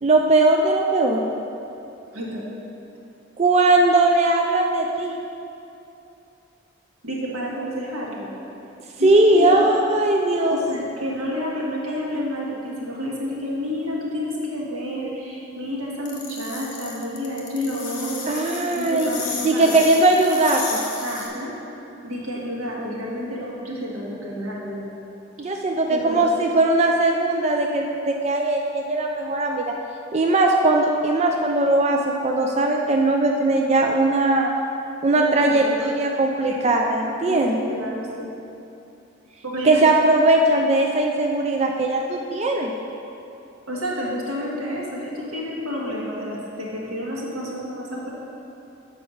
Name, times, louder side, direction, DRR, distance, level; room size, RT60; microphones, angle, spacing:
voice 1, 0.0-1.2 3.4-5.2 9.0-10.6 18.3-20.8 25.4-29.7 30.1-34.5 35.0-37.6 39.6-42.7, right 2 dB, 30° right, 1 dB, 0.4 m, -19 dB
voice 2, 2.1-2.5 7.0-8.3 9.0-9.7 10.5-18.4 18.7-19.7 21.0-21.6 22.0-24.9 25.9-26.2 35.1-35.8 36.4-36.6 37.3-38.3 39.4-39.9 40.2-40.3 43.7-48.1, equal, 85° right, -4 dB, 1.6 m, -30 dB
sound 1, 16.1-21.3, left 4 dB, 40° left, 1.0 m, -33 dB
7.0 x 4.8 x 6.2 m, 2.8 s
head